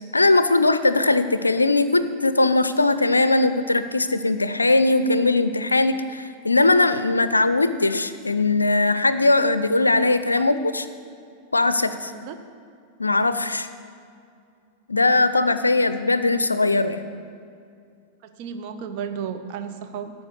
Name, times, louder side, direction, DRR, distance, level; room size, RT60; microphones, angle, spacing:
voice 1, 0.1-10.9 11.5-12.1 13.0-13.7 14.9-17.0, left 2 dB, 80° left, 12 dB, 0.4 m, -20 dB
voice 2, 12.0-12.4 18.2-20.1, right 7 dB, 45° right, 7 dB, 0.7 m, -33 dB
13.0 x 5.1 x 6.6 m, 2.5 s
figure-of-eight pair, 90°, 0 cm